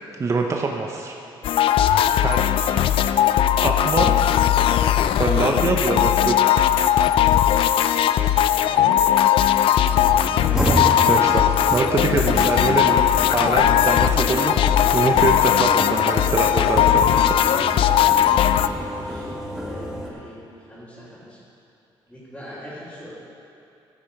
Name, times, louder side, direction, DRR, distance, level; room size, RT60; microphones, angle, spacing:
voice 1, 0.2-1.1 2.2-2.8 3.6-4.1 5.2-6.6 10.6-13.1 13.3-14.5 14.9-17.3, right 4 dB, 30° right, 1 dB, 0.8 m, -24 dB
sound 1, 1.4-18.7, left 10 dB, 70° left, 0.4 m, -18 dB
voice 2, 1.7-2.2 8.5-9.5 13.8-14.2 18.7-21.4 22.1-23.1, equal, 10° left, -11 dB, 3.0 m, -43 dB
sound 2, 9.9-20.1, equal, 5° right, 1.3 m, -30 dB
15.0 x 7.1 x 5.3 m, 2.9 s
cardioid pair, 125°, 9 cm